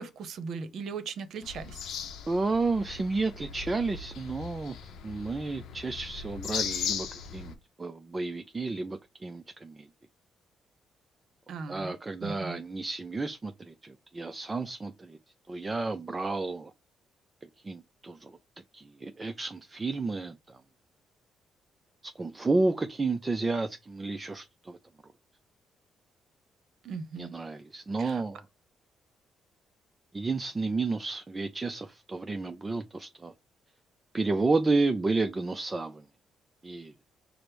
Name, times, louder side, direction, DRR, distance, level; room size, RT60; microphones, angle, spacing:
voice 1, 0.0-1.8 11.5-11.9 12.2-12.6 26.8-27.3 28.0-28.2, right 5 dB, 65° right, 0.8 m, -38 dB
sound 1, 1.4-7.5, left 7 dB, 75° left, 0.6 m, -38 dB
voice 2, 2.3-9.9 11.7-15.2 15.5-16.7 17.6-18.4 18.7-20.6 22.0-24.8 27.2-28.4 30.1-33.3 34.1-36.0 36.6-36.9, right 3 dB, 25° right, 0.4 m, -31 dB
4.9 x 2.1 x 4.5 m
cardioid pair, 90°, 0 cm